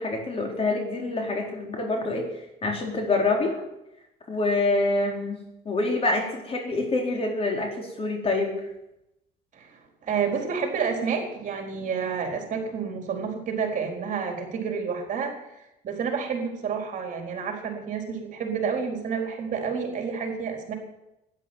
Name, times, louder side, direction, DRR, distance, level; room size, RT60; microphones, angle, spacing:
voice 1, 0.0-2.3 2.6-3.6 4.3-5.4 5.6-8.7, left 2 dB, 35° left, 2 dB, 4.3 m, -26 dB
voice 2, 9.5-15.3 15.8-20.7, right 6 dB, 50° right, 2 dB, 4.4 m, -29 dB
12.0 x 11.0 x 9.4 m, 0.87 s
cardioid pair, 110°, 17 cm